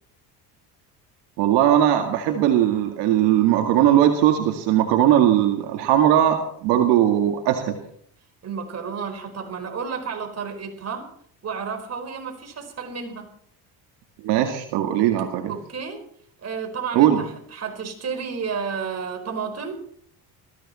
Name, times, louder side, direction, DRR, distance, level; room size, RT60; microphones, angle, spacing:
voice 1, 1.4-7.7 14.2-15.5 17.0-17.2, right 11 dB, 85° right, 4 dB, 2.1 m, -19 dB
voice 2, 8.4-11.1 11.4-13.3 14.9-15.0 15.5-16.0 16.4-19.9, right 6 dB, 40° right, 4 dB, 4.9 m, -31 dB
21.0 x 15.0 x 4.3 m, 0.62 s
cardioid pair, 95°, 39 cm